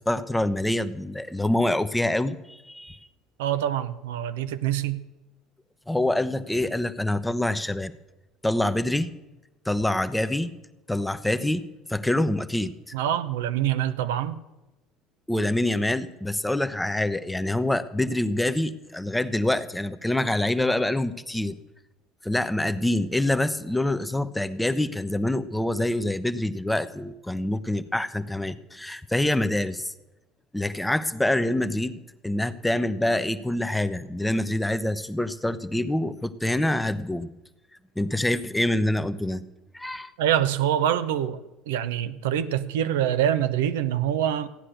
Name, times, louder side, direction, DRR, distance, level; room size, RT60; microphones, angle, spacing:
voice 1, 0.0-3.0 5.9-7.9 8.4-9.1 9.6-10.5 10.9-12.9 15.3-21.5 22.2-29.9 30.5-37.3 38.0-39.4 39.7-40.1, left 1 dB, 5° left, 0.9 m, -26 dB
voice 2, 3.4-5.0 12.9-14.4 40.2-41.4 41.7-44.5, right 10 dB, 75° right, 0.7 m, -25 dB
15.0 x 9.9 x 6.5 m
hypercardioid pair, 65°, 0 cm